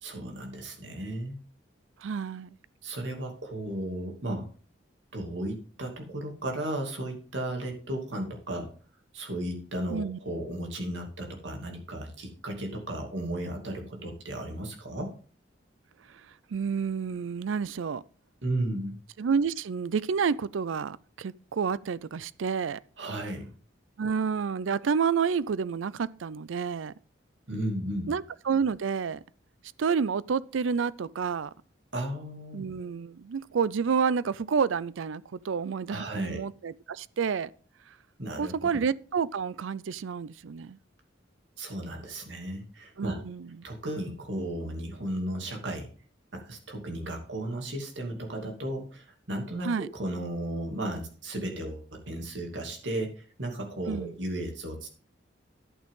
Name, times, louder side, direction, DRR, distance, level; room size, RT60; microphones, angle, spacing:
voice 1, 0.0-1.4 2.8-4.5 5.1-8.7 9.1-15.1 18.4-19.0 23.0-23.5 27.5-28.1 31.9-32.6 35.9-36.4 38.2-38.5 41.6-43.2 43.6-45.9 46.3-54.9, right 1 dB, 70° right, 2.6 m, -34 dB
voice 2, 2.0-2.5 9.9-10.2 16.5-18.0 19.2-22.8 24.0-26.9 28.1-29.2 29.8-31.5 32.5-37.5 38.4-40.8 43.0-43.5 49.6-49.9 53.9-54.1, right 6 dB, 85° right, 0.4 m, -29 dB
11.0 x 8.9 x 3.7 m
head